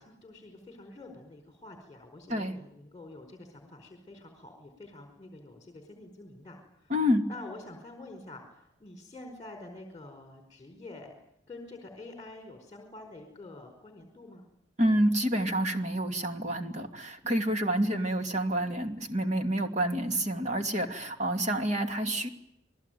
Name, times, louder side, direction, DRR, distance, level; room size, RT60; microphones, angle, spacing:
voice 1, 0.0-6.9 7.3-11.1 11.5-14.4, left 2 dB, 20° left, 3 dB, 4.7 m, -47 dB
voice 2, 6.9-7.2 14.8-22.3, equal, 35° right, 5 dB, 2.6 m, -28 dB
28.5 x 20.5 x 9.3 m, 0.80 s
head